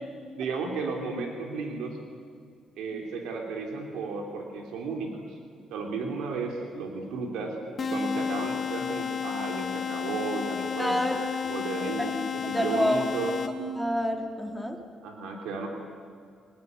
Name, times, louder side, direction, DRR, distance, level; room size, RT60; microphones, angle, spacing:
voice 1, 0.4-2.0 2.8-5.2 5.7-7.6 7.8-11.0 11.5-13.4 15.0-15.7, right 4 dB, 90° right, 2 dB, 3.6 m, -33 dB
sound 1, 7.8-13.8, left 6 dB, 45° left, 2.4 m, -32 dB
voice 2, 10.8-11.2 11.4-11.5 12.0-12.1 12.5-13.0 13.8-14.8, equal, 5° right, 4 dB, 3.5 m, -27 dB
24.5 x 20.5 x 9.7 m, 2.2 s
cardioid pair, 90°, 0 cm